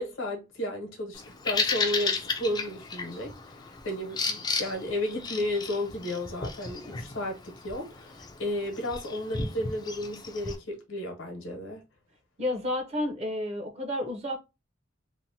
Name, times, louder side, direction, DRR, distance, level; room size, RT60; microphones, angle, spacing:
voice 1, 0.0-11.8, left 1 dB, 85° left, 0.9 m, -33 dB
Bird vocalization bird call bird song, 1.1-10.6, left 4 dB, 20° left, 0.3 m, -34 dB
voice 2, 12.4-14.4, left 1 dB, 35° right, 0.6 m, -31 dB
2.7 x 2.1 x 2.7 m
head